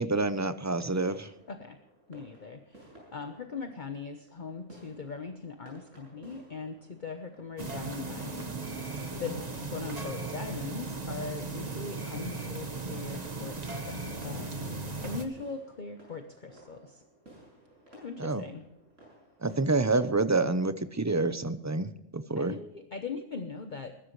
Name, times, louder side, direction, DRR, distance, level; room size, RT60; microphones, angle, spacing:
voice 1, 0.0-1.3 18.2-18.4 19.4-22.5, right 3 dB, 15° right, 12 dB, 0.6 m, -28 dB
sound 1, 0.6-20.0, right 1 dB, 85° right, 7.1 m, -56 dB
voice 2, 2.1-2.8 3.1-8.8 9.1-14.5 15.0-17.0 17.9-18.6 22.4-23.9, left 5 dB, 40° left, 6 dB, 1.1 m, -40 dB
sound 2, 7.6-15.2, right 3 dB, 35° right, 1.5 m, -37 dB
21.5 x 13.0 x 3.2 m, 0.85 s
omnidirectional pair, 1.3 m